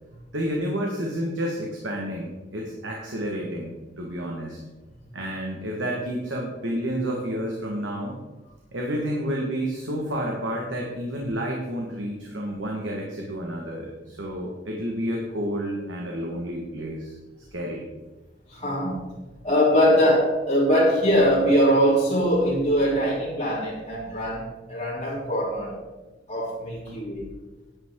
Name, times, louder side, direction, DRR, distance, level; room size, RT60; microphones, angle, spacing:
voice 1, 0.3-4.6 5.1-8.1 8.7-17.1 17.5-17.8 26.9-27.0, equal, 90° right, -1 dB, 1.6 m, -30 dB
voice 2, 18.5-19.0 19.4-25.7 26.3-27.3, equal, 35° left, -11 dB, 3.5 m, -22 dB
10.5 x 9.4 x 3.8 m, 1.1 s
head